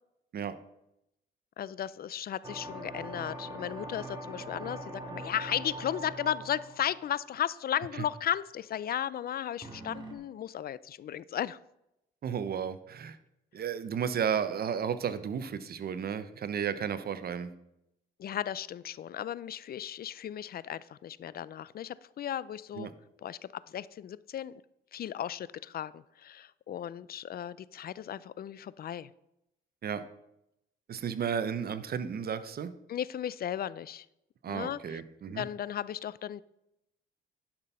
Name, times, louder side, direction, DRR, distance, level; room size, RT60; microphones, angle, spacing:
voice 1, 1.6-11.6 18.2-22.9 23.2-23.4 23.7-24.6 24.9-29.1 32.9-34.1 34.5-35.0 35.4-36.4, left 10 dB, 50° left, 19 dB, 0.4 m, -35 dB
sound 1, 2.4-7.9 9.6-10.1, right 1 dB, 25° right, 2.2 m, -43 dB
voice 2, 12.2-13.2 13.5-17.5 22.7-22.9 29.8-30.0 30.9-32.7 34.4-35.4, right 7 dB, 50° right, 13 dB, 0.8 m, -33 dB
10.5 x 6.1 x 5.5 m, 0.84 s
cardioid pair, 90°, 20 cm